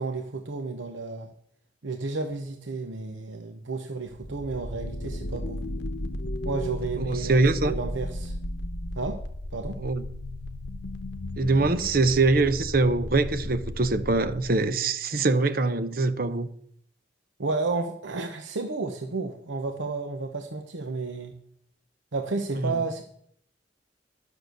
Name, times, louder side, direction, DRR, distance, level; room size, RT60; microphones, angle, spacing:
voice 1, 0.0-1.3 1.8-5.6 6.4-7.4 7.7-8.3 8.9-9.2 9.5-9.8 17.4-21.3 22.1-23.1, right 3 dB, 85° right, 0.9 m, -32 dB
sound 1, 4.1-14.7, left 1 dB, 65° left, 0.9 m, -35 dB
voice 2, 7.0-7.7 9.8-10.0 11.4-16.5 22.5-22.8, right 3 dB, 50° right, 0.7 m, -23 dB
11.5 x 6.5 x 6.6 m
head